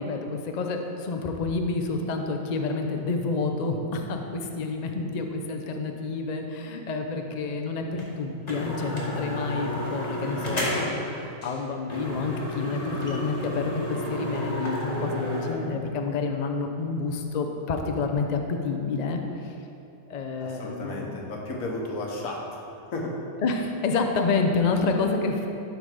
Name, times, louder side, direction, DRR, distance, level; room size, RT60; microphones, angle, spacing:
voice 1, 0.0-19.5 20.1-21.2 23.4-25.5, left 4 dB, 50° left, 4 dB, 0.5 m, -29 dB
sound 1, 8.0-8.1 8.5-11.1 11.4-11.6 11.9-15.5, left 1 dB, 30° left, 1.2 m, -31 dB
voice 2, 20.4-22.6 22.9-23.2, left 2 dB, 70° left, -1 dB, 1.5 m, -33 dB
11.5 x 4.0 x 4.9 m, 2.7 s
omnidirectional pair, 1.5 m